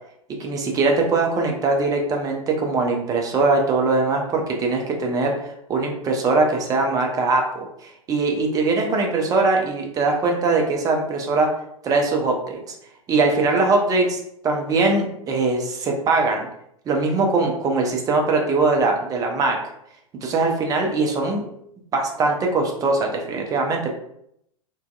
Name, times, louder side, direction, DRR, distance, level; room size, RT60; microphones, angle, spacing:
voice 1, 0.4-5.3 5.7-11.5 11.8-12.7 13.1-14.2 14.4-16.5 16.9-19.6 20.2-21.5 21.9-23.9, right 3 dB, 20° right, 1 dB, 0.4 m, -21 dB
2.6 x 2.2 x 2.2 m, 0.75 s
figure-of-eight pair, 95°, 18 cm